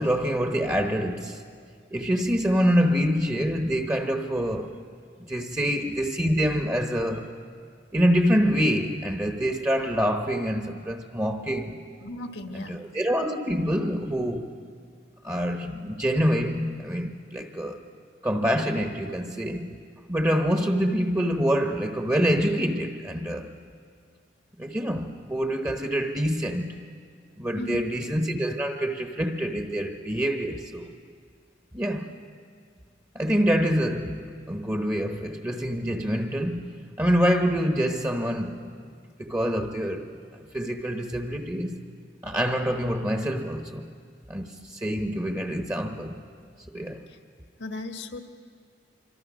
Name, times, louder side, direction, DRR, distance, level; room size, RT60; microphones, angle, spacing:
voice 1, 0.0-1.4 1.9-4.7 5.2-7.4 7.9-11.8 12.5-14.5 15.2-17.8 18.2-19.7 20.1-23.5 24.6-26.8 27.4-30.9 31.7-32.1 33.1-38.9 39.2-40.1 40.5-41.9 42.2-43.8 44.3-46.2 46.7-47.1, equal, 15° right, 1.0 m, -26 dB
voice 2, 12.0-12.8 27.6-27.8 47.1-47.2 47.6-48.2, left 2 dB, 80° left, 1.6 m, -36 dB
26.0 x 25.0 x 6.3 m
head